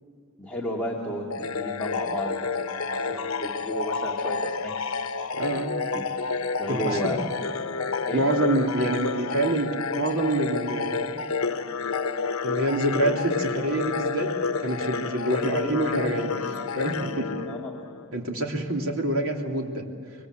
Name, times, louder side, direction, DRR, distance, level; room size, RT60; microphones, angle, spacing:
voice 1, 0.4-5.0 5.9-6.0 6.6-7.2 8.1-8.2 15.5-15.7 17.5-17.7, equal, 5° left, -3 dB, 2.4 m, -33 dB
sound 1, 1.3-18.1, left 5 dB, 80° left, 0.9 m, -30 dB
voice 2, 5.4-5.7 6.7-7.2 8.1-11.2 12.4-14.3 14.6-17.4 18.1-19.8, right 1 dB, 85° right, 1 dB, 3.0 m, -27 dB
26.0 x 23.5 x 8.2 m, 2.4 s
head